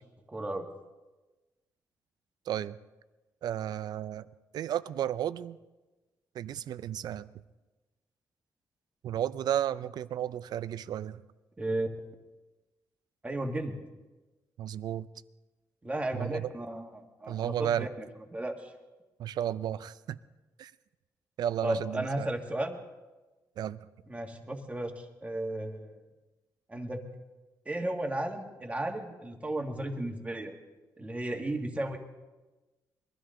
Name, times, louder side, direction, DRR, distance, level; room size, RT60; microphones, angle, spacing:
voice 1, 0.3-0.7 11.6-11.9 13.2-13.8 15.8-18.7 21.6-22.8 24.1-26.0 26.7-27.0 27.6-30.5 31.0-32.0, right 1 dB, 20° right, 3 dB, 1.7 m, -34 dB
voice 2, 2.5-2.8 3.4-4.3 4.5-5.6 6.3-7.3 9.0-11.2 14.6-15.1 16.1-16.5 17.3-17.9 19.2-20.2 20.6-20.7 21.4-22.3 23.6-23.9, right 10 dB, 80° right, 15 dB, 0.5 m, -33 dB
22.0 x 13.0 x 3.8 m, 1.1 s
cardioid pair, 105°, 7 cm